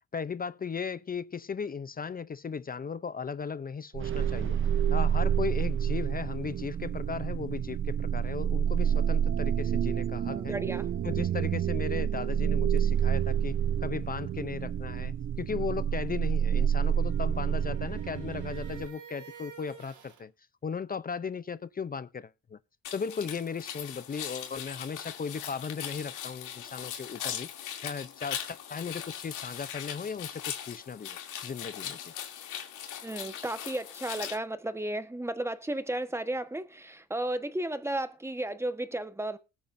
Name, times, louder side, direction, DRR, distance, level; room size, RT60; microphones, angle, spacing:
voice 1, 0.1-4.6 4.9-10.6 11.0-13.6 13.8-20.3 20.6-22.6 22.9-27.5 27.8-32.1, left 6 dB, 30° left, 0.6 m, -36 dB
sound 1, 3.9-18.9, right 9 dB, 40° right, 0.6 m, -28 dB
voice 2, 10.3-10.9 33.0-39.4, right 1 dB, 10° right, 1.3 m, -34 dB
sound 2, 16.6-20.3, right 8 dB, 75° right, 2.8 m, -51 dB
sound 3, 22.8-34.3, left 9 dB, 90° left, 3.0 m, -40 dB
20.0 x 8.7 x 2.7 m
cardioid pair, 90°, 30 cm